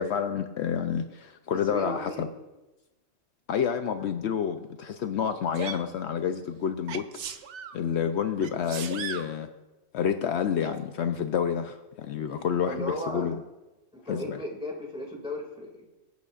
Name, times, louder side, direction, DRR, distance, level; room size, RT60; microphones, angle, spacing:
voice 1, 0.0-2.3 3.5-7.0 7.7-9.5 9.9-13.4 14.1-14.4, left 8 dB, 70° left, 7 dB, 0.8 m, -29 dB
voice 2, 1.5-2.3 4.0-4.1 12.1-13.3 13.9-15.9, equal, 5° right, -1 dB, 2.1 m, -36 dB
Sneeze, 5.5-5.9 6.9-7.8 8.4-9.3 10.6-10.7, right 7 dB, 70° right, 1.0 m, -37 dB
24.5 x 8.2 x 2.4 m, 1.0 s
omnidirectional pair, 1.2 m